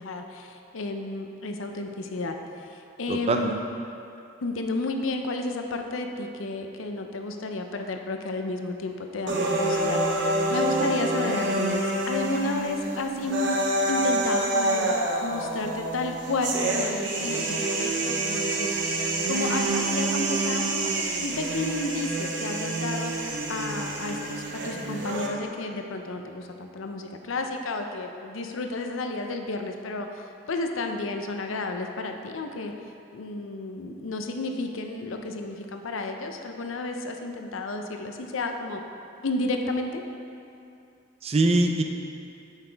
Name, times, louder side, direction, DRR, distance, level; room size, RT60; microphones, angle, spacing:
voice 1, 0.0-3.6 4.4-13.6 13.9-32.7 33.1-38.8 39.2-40.0, left 2 dB, 85° left, 4 dB, 0.6 m, -32 dB
voice 2, 3.1-3.6 41.2-41.8, right 2 dB, 30° right, 3 dB, 0.4 m, -22 dB
sound 1, 9.3-25.3, right 2 dB, 65° right, 0.8 m, -27 dB
8.7 x 5.8 x 3.4 m, 2.6 s
head